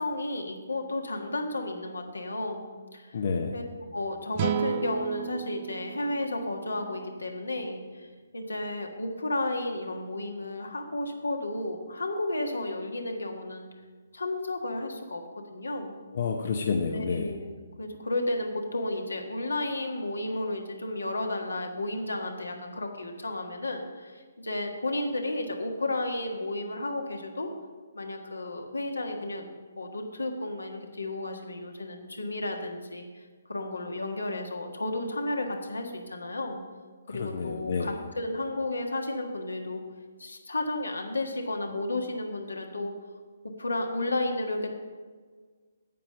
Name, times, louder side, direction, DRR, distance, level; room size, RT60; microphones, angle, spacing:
voice 1, 0.0-2.6 2.9-3.2 3.5-3.6 3.9-13.6 14.1-15.9 16.9-27.5 27.9-29.4 29.8-33.2 33.5-36.6 37.1-39.8 40.2-42.9 43.6-44.7, left 2 dB, 70° left, 3 dB, 1.5 m, -33 dB
voice 2, 3.1-3.5 16.1-17.3 37.1-37.9, left 5 dB, 45° left, 3 dB, 0.8 m, -29 dB
sound 1, 4.3-7.7, right 9 dB, 30° right, 0.5 m, -34 dB
9.3 x 8.6 x 5.5 m, 1.5 s
figure-of-eight pair, 135°, 0 cm